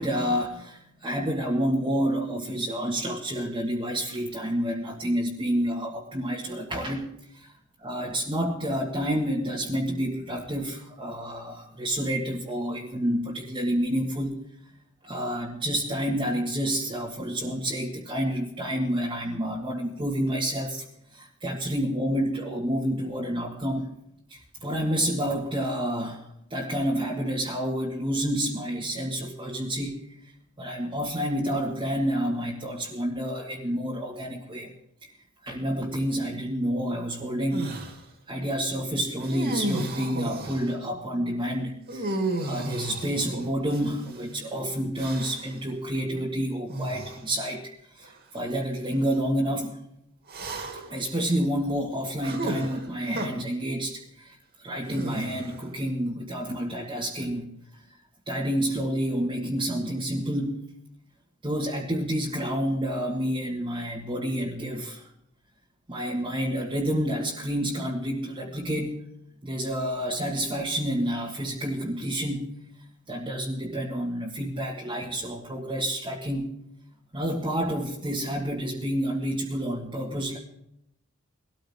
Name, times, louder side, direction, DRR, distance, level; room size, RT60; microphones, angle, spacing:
voice 1, 0.0-7.5 7.8-14.5 15.0-20.8 21.1-24.0 24.3-26.2 26.5-30.1 30.6-34.7 35.0-35.1 35.4-37.8 38.3-49.8 50.9-57.5 58.3-60.7 61.4-65.1 65.9-69.0 69.4-72.5 73.1-76.6 77.1-80.4, equal, 25° right, -3 dB, 1.7 m, -29 dB
sound 1, 37.5-38.0 39.2-40.7 41.9-44.2 45.0-45.6 46.7-47.2 48.0-48.2 50.3-51.0 52.2-53.3 54.9-55.7, right 1 dB, 50° right, 2.6 m, -33 dB
20.0 x 13.5 x 3.6 m, 0.77 s
head